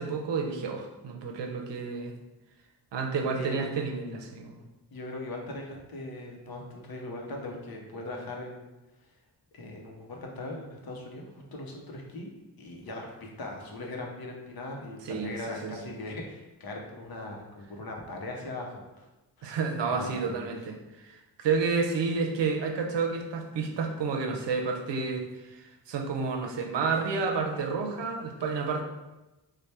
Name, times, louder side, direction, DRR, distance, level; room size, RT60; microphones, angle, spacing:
voice 1, 0.0-2.1 2.9-4.6 15.0-15.9 19.4-28.8, right 4 dB, 90° right, 3 dB, 0.6 m, -30 dB
voice 2, 4.9-8.7 9.0-9.1 9.5-12.3 12.6-19.1 19.4-20.5, left 2 dB, 60° left, 0 dB, 0.7 m, -40 dB
3.3 x 2.2 x 4.1 m, 1.0 s
wide cardioid pair, 175°, 42 cm